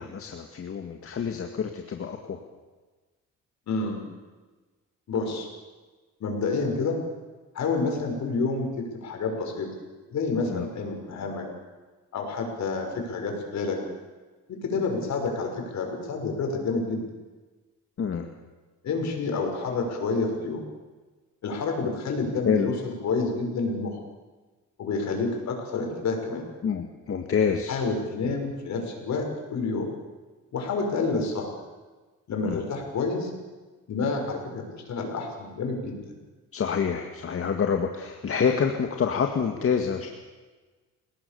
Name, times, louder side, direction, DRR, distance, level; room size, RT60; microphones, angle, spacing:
voice 1, 0.0-2.4 10.5-10.7 18.0-18.3 22.5-22.7 26.6-27.8 32.4-32.6 36.5-40.1, left 6 dB, 45° left, 4 dB, 2.0 m, -27 dB
voice 2, 3.7-4.0 5.1-5.5 6.2-7.0 7.5-9.7 10.1-11.4 12.1-13.8 14.5-17.1 18.8-20.6 21.4-24.0 24.8-26.5 27.7-29.9 30.5-31.5 32.3-33.3 33.9-36.1, left 3 dB, 60° left, 2 dB, 6.6 m, -29 dB
28.5 x 18.5 x 7.1 m, 1.3 s
cardioid pair, 115°, 31 cm